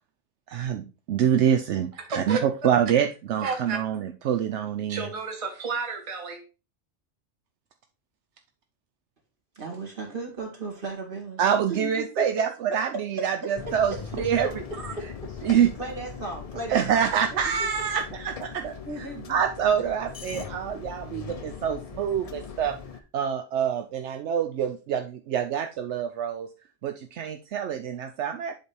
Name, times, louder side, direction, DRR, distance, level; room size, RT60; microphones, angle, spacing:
voice 1, 0.5-1.9 2.2-2.4 2.6-5.0 11.4-14.5 15.4-15.7 16.7-22.8 23.1-26.5 26.8-28.6, right 8 dB, 75° right, 6 dB, 0.9 m, -26 dB
voice 2, 2.1-2.4 3.4-3.8 4.9-6.4 14.8-14.9, right 4 dB, 30° right, 3 dB, 1.0 m, -31 dB
voice 3, 9.6-11.4 11.7-11.9 12.2-12.3 15.8-17.0 17.4-17.5 18.8-19.4, right 2 dB, 45° right, -1 dB, 2.2 m, -35 dB
sound 1, 13.5-23.0, left 6 dB, 45° left, 0.5 m, -40 dB
7.7 x 3.4 x 4.3 m, 0.32 s
omnidirectional pair, 1.2 m